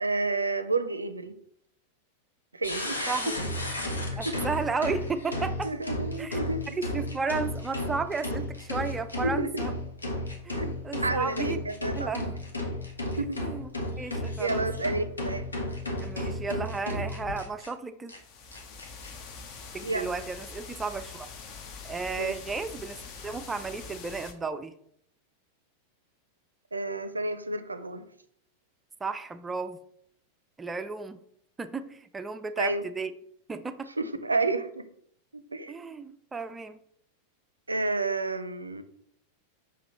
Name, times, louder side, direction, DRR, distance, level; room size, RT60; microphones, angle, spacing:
voice 1, 0.0-1.3 2.5-3.4 4.2-4.4 5.6-6.8 9.2-9.7 10.6-10.7 11.0-12.1 13.2-13.4 14.4-15.5 19.8-20.1 22.2-22.3 26.7-28.0 32.6-32.8 34.0-34.8 35.3-35.8 37.7-38.8, right 2 dB, 80° right, 12 dB, 0.5 m, -30 dB
sound 1, 2.6-17.7 18.1-18.2 18.5-19.1, left 1 dB, 75° left, 1.2 m, -33 dB
voice 2, 3.1-3.4 4.2-5.7 6.2-6.4 6.9-9.7 10.4-11.6 12.0-12.4 13.4-13.7 14.0-14.7 16.0-18.1 19.7-21.3 21.8-24.8 29.0-29.8 30.6-31.2 31.6-33.1 33.5-33.9 35.7-36.8, right 4 dB, 15° right, 10 dB, 0.4 m, -33 dB
sound 2, 18.1-24.3, left 5 dB, 40° left, 0.9 m, -44 dB
5.9 x 5.5 x 3.1 m, 0.69 s
figure-of-eight pair, 90°, 0 cm